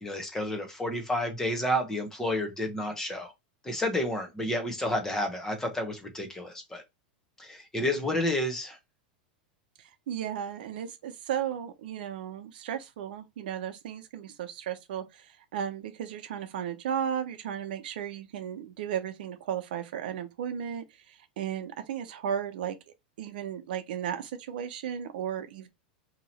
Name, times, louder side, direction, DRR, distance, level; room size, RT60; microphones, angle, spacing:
voice 1, 0.0-3.3 3.6-6.8 7.4-8.8, left 1 dB, 10° left, 1.0 m, -30 dB
voice 2, 9.8-22.8 23.2-25.7, right 9 dB, 75° right, 0.7 m, -35 dB
2.9 x 2.8 x 4.1 m
supercardioid pair, 140°, 5 cm